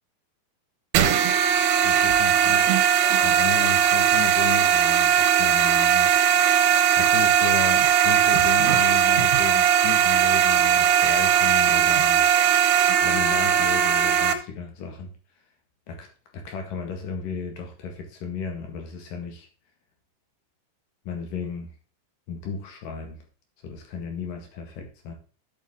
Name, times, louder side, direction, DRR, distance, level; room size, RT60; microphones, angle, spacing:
sound 1, 0.9-14.3, right 9 dB, 75° right, 2.6 m, -19 dB
voice 1, 1.8-2.7 3.2-6.2 7.0-12.2 13.0-15.1 15.9-16.1 16.3-19.5 21.0-21.7 22.3-23.2 23.6-25.1, left 5 dB, 60° left, 3 dB, 3.0 m, -34 dB
10.5 x 7.3 x 3.7 m, 0.36 s
omnidirectional pair, 5.1 m